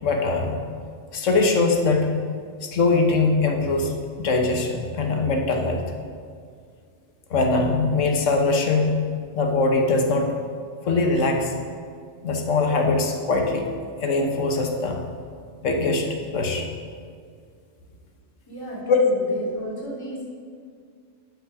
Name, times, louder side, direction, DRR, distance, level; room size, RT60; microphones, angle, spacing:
voice 1, 0.0-0.5 1.1-2.1 2.6-3.9 4.2-5.8 7.3-8.9 9.3-10.4 10.8-11.5 12.2-13.7 14.0-15.0 15.6-16.7 18.9-19.0, left 3 dB, 75° left, 3 dB, 1.4 m, -22 dB
voice 2, 18.5-20.2, equal, 15° left, -8 dB, 2.6 m, -34 dB
10.0 x 5.3 x 5.9 m, 2.1 s
omnidirectional pair, 1.3 m